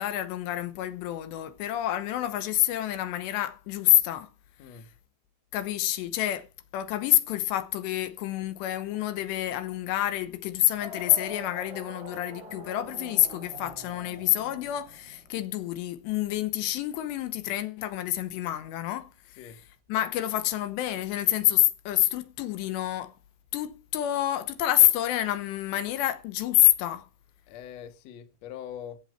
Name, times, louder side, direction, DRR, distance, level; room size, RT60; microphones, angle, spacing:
voice 1, 0.0-4.3 5.5-6.5 6.7-19.1 19.4-19.6 19.9-23.1 23.5-27.1, left 14 dB, 85° left, 3.1 m, -27 dB
sound 1, 10.8-15.3, equal, 50° right, 1.5 m, -44 dB
voice 2, 27.5-29.0, left 9 dB, 65° left, 1.7 m, -42 dB
14.5 x 7.2 x 4.6 m
omnidirectional pair, 5.0 m